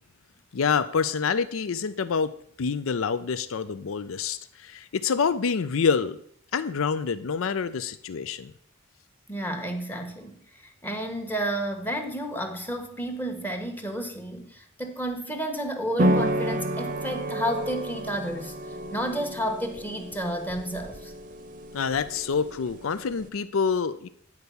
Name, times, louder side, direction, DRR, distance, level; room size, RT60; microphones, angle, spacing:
voice 1, 0.5-6.2 6.5-8.5 21.7-24.1, left 5 dB, 80° left, 14 dB, 0.5 m, -27 dB
voice 2, 9.3-18.5 18.9-21.1, right 1 dB, 10° left, 4 dB, 1.1 m, -31 dB
sound 1, 16.0-23.3, right 1 dB, 40° right, 0.7 m, -30 dB
9.7 x 4.7 x 6.9 m, 0.64 s
head